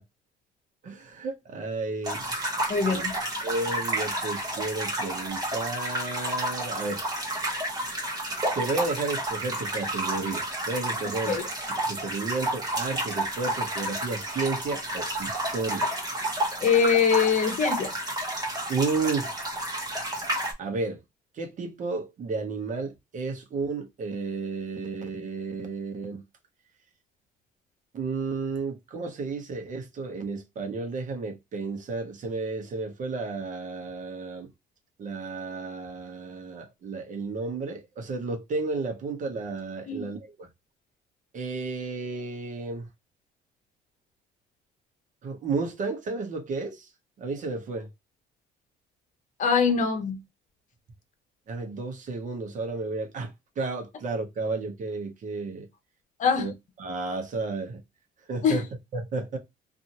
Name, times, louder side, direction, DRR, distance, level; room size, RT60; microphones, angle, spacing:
voice 1, 0.8-2.2 2.5-3.0 3.4-7.0 8.5-11.3 11.8-15.9 18.7-19.3 20.6-21.0 21.3-26.2 27.9-34.5 35.0-40.5 41.3-42.9 45.2-46.9 47.2-47.9 51.5-55.7 56.4-56.5 56.8-57.8 58.3-58.6 58.9-59.4, right 3 dB, 50° right, 0.9 m, -32 dB
sound 1, 2.0-20.5, right 1 dB, 20° right, 1.1 m, -31 dB
voice 2, 2.7-3.1 11.3-11.4 16.6-17.9 39.9-40.1 49.4-50.2 56.2-56.5 58.4-58.6, left 6 dB, 45° left, 1.0 m, -23 dB
2.7 x 2.5 x 2.8 m
cardioid pair, 110°, 17 cm